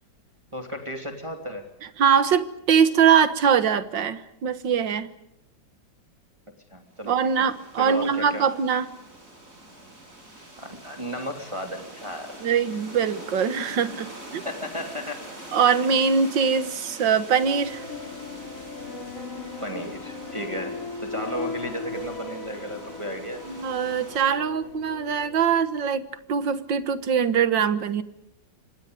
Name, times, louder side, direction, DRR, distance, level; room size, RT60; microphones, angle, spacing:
voice 1, 0.5-1.7 6.7-7.5 7.8-8.4 10.6-12.4 14.4-15.2 19.6-23.4, equal, 15° right, 4 dB, 2.9 m, -34 dB
voice 2, 2.0-5.1 7.1-8.9 12.4-14.4 15.5-17.9 23.5-28.0, right 7 dB, 80° right, 12 dB, 2.1 m, -22 dB
sound 1, 6.9-24.3, right 1 dB, 45° right, 6.8 m, -44 dB
sound 2, 17.4-25.4, left 4 dB, 45° left, 3.0 m, -37 dB
28.0 x 26.0 x 5.2 m, 0.80 s
omnidirectional pair, 2.0 m